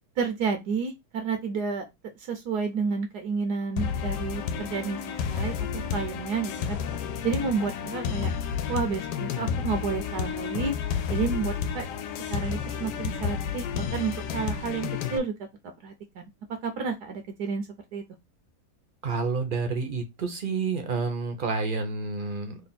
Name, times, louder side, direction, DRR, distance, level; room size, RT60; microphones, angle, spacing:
voice 1, 0.2-1.8 2.3-6.8 7.2-8.3 8.7-10.8 11.1-11.9 12.3-15.3 15.6-16.2 16.6-18.0, right 5 dB, 75° right, 1.2 m, -30 dB
sound 1, 3.8-15.2, left 7 dB, 85° left, 1.2 m, -31 dB
voice 2, 19.0-22.6, right 4 dB, 45° right, 0.7 m, -29 dB
3.4 x 2.6 x 4.0 m
omnidirectional pair, 1.8 m